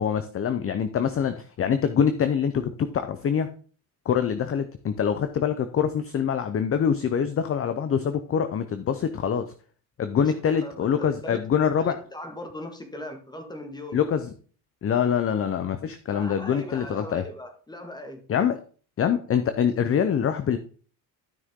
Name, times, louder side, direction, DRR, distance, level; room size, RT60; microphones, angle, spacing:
voice 1, 0.0-3.5 4.1-9.5 10.0-12.0 13.9-14.3 14.8-17.2 18.3-18.6 19.0-20.6, left 7 dB, 30° left, 10 dB, 0.7 m, -25 dB
voice 2, 10.1-11.4 11.8-14.0 16.1-18.5, left 1 dB, 10° left, 6 dB, 1.8 m, -39 dB
12.5 x 6.2 x 3.7 m, 0.41 s
cardioid pair, 125°, 45 cm